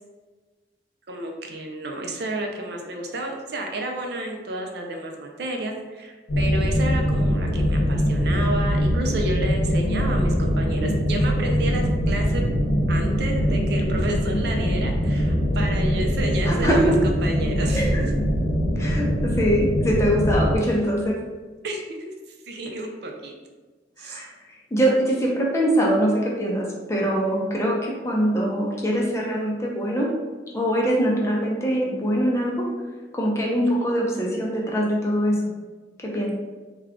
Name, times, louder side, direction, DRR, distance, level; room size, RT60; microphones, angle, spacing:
voice 1, 1.1-12.4 12.9-16.9 17.2-18.0 21.6-22.1 22.5-23.3 24.0-24.2, right 1 dB, 65° right, 2 dB, 0.5 m, -31 dB
sound 1, 6.3-20.6, equal, 70° left, 0.5 m, -22 dB
voice 2, 16.4-16.9 17.7-18.1 18.8-21.2 24.0-24.3 24.7-30.1 30.5-32.7 33.1-35.4 36.0-36.3, equal, 15° left, -3 dB, 0.6 m, -23 dB
3.4 x 2.3 x 3.5 m, 1.3 s
head